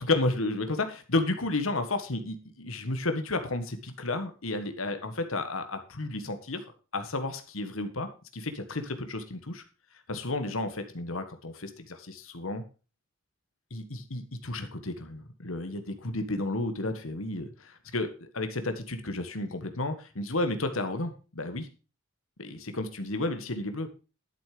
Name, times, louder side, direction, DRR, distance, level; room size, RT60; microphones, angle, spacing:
voice 1, 0.1-6.6 6.9-9.6 10.1-12.6 13.7-21.7 22.4-23.9, left 2 dB, 85° left, 8 dB, 1.6 m, -32 dB
12.0 x 7.3 x 5.0 m, 0.33 s
head